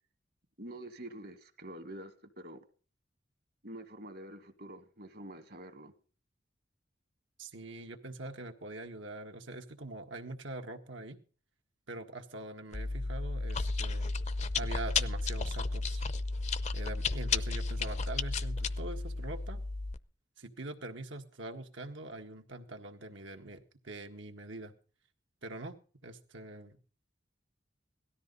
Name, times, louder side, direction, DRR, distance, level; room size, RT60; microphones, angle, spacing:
voice 1, 0.6-2.6 3.6-5.9, right 1 dB, 55° right, 1.8 m, -47 dB
voice 2, 7.4-11.2 11.9-14.1 14.5-16.0 16.7-19.6 20.4-24.7 25.4-25.8 26.0-26.8, right 2 dB, 80° right, 1.8 m, -44 dB
Chewing mastication, 12.7-20.0, left 3 dB, 40° left, 0.6 m, -33 dB
18.0 x 13.0 x 4.0 m
head